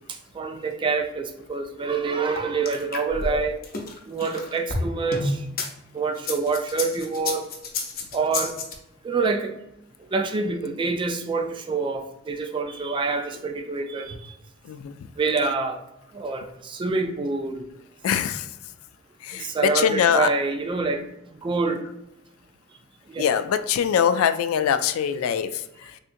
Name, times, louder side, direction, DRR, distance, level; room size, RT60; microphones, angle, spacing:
voice 1, 0.3-3.6 4.1-5.4 5.9-7.5 8.1-8.5 9.0-9.5 10.1-14.3 15.2-15.8 16.1-17.6 19.4-21.0 21.4-21.8 23.1-23.2, right 4 dB, 25° right, 6 dB, 0.3 m, -26 dB
sound 1, 2.4-5.7 6.2-8.7, left 3 dB, 45° left, 0.6 m, -29 dB
voice 2, 14.6-15.0 18.0-18.5 19.2-20.3 23.2-26.0, left 8 dB, 85° left, 14 dB, 0.3 m, -23 dB
3.5 x 2.8 x 2.5 m, 0.87 s
head